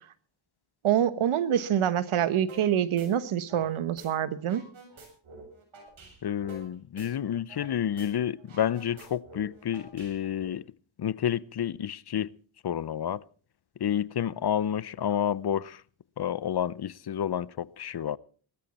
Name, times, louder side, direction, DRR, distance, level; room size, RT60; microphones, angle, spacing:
voice 1, 0.8-4.6, right 10 dB, 90° right, 1.2 m, -26 dB
sound 1, 2.5-2.7 3.0-4.1 4.4-7.7 8.0-8.1 8.4-10.5, right 3 dB, 70° right, 6.9 m, -49 dB
voice 2, 6.2-10.6 11.0-12.3 12.6-13.2 13.8-15.8 16.2-18.2, left 9 dB, 55° left, 0.7 m, -30 dB
19.5 x 13.5 x 4.3 m
cardioid pair, 65°, 48 cm